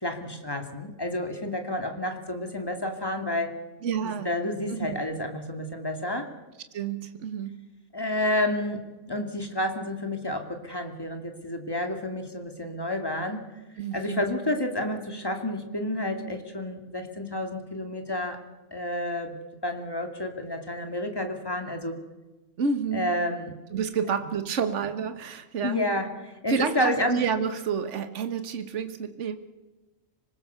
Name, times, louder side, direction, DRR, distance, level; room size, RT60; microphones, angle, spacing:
voice 1, 0.0-3.5 4.0-6.3 7.9-13.4 13.9-18.4 18.7-19.4 19.6-22.0 22.9-23.6 24.2-24.3 25.6-27.2, left 1 dB, 15° left, 5 dB, 2.5 m, -30 dB
voice 2, 3.8-4.3 4.7-5.0 6.7-7.6 13.8-14.2 22.6-23.2 23.7-25.9 26.5-29.3, right 6 dB, 65° right, 9 dB, 1.5 m, -29 dB
26.0 x 20.0 x 6.8 m, 1.1 s
omnidirectional pair, 1.4 m